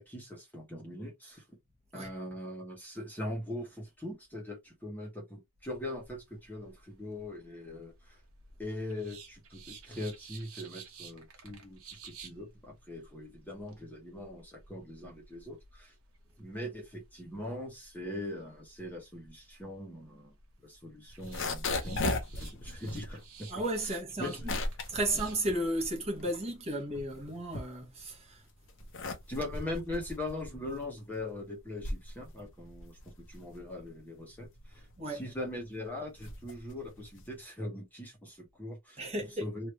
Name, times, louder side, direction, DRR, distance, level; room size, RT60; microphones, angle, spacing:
voice 1, 0.0-1.4 1.9-8.2 8.6-15.9 16.4-20.3 20.6-23.5 24.2-24.6 29.3-39.0 39.4-39.7, left 1 dB, 10° left, 0.9 m, -41 dB
sound 1, 5.6-25.5, right 5 dB, 70° right, 1.0 m, -55 dB
sound 2, 21.1-26.4 26.7-28.2 28.6-37.4, left 2 dB, 60° left, 0.8 m, -38 dB
voice 2, 23.5-24.5 24.9-28.4 35.0-35.2 39.0-39.5, right 1 dB, 30° right, 1.0 m, -34 dB
3.1 x 2.5 x 3.1 m
head